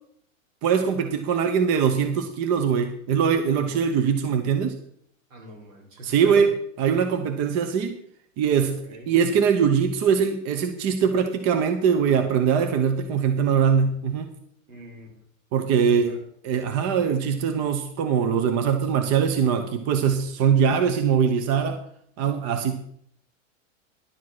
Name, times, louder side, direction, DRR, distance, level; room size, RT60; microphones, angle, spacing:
voice 1, 0.6-4.8 6.0-6.5 6.8-8.0 8.4-14.3 15.5-16.2 16.4-21.8 22.2-22.8, right 7 dB, 40° right, 8 dB, 1.1 m, -22 dB
voice 2, 5.3-6.4 8.6-9.1 14.7-15.1 16.0-16.2 17.0-17.1, right 2 dB, 85° right, -2 dB, 5.2 m, -41 dB
11.5 x 7.3 x 6.2 m, 0.69 s
hypercardioid pair, 120°, 39 cm